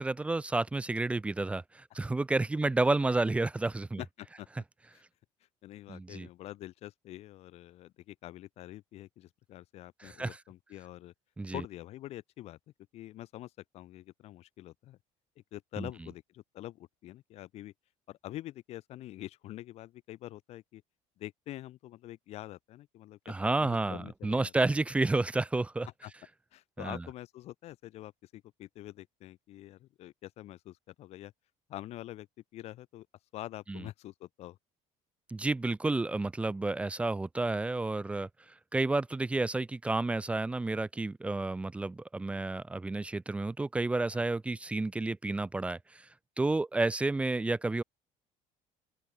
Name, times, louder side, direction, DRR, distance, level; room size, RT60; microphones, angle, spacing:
voice 1, 0.0-4.0 5.9-6.3 10.0-10.4 11.4-11.6 15.8-15.9 23.3-25.9 26.8-27.0 33.7-33.8 35.3-38.3 38.7-46.1 46.4-47.8, right 2 dB, 10° right, 1.5 m, -30 dB
voice 2, 4.0-4.5 4.9-5.0 5.6-11.1 11.5-12.6 12.9-15.0 15.5-17.7 18.1-20.8 21.2-24.5 26.0-26.1 26.5-31.3 31.7-32.3 32.5-33.1 33.3-34.6 44.1-44.3 46.7-46.8, left 15 dB, 50° left, 4.9 m, -46 dB
open air
cardioid pair, 180°, 14 cm